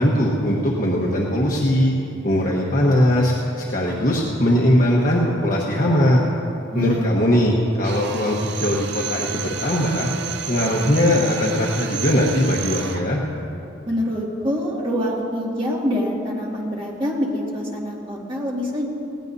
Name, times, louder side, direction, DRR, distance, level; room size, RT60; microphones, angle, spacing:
voice 1, 0.0-1.9 2.2-6.2 6.7-10.1 10.4-13.2, equal, 45° left, -4 dB, 1.2 m, -20 dB
voice 2, 6.7-7.1 10.6-11.0 13.9-18.9, equal, 25° right, -4 dB, 2.3 m, -25 dB
Drill, 7.8-13.1, right 9 dB, 60° right, 0.6 m, -31 dB
19.5 x 17.5 x 2.7 m, 2.8 s
head